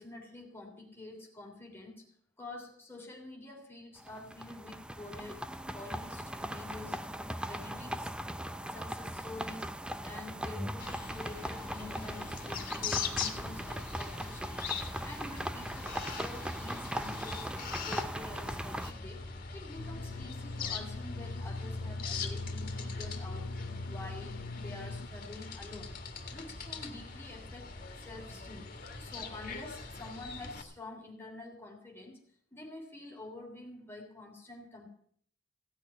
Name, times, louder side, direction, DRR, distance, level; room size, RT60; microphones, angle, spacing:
voice 1, 0.0-2.0 2.4-5.4 5.7-7.0 7.5-8.2 8.6-9.7 10.0-19.3 19.5-23.5 23.9-25.9 26.3-32.2 32.5-34.9, left 2 dB, 10° left, 0 dB, 3.2 m, -47 dB
sound 1, 4.0-18.9, right 1 dB, 5° right, 0.5 m, -39 dB
sound 2, 10.8-30.6, left 4 dB, 45° left, 2.0 m, -41 dB
sound 3, 19.8-25.1, left 3 dB, 80° left, 0.7 m, -43 dB
16.5 x 6.6 x 9.9 m, 0.63 s
head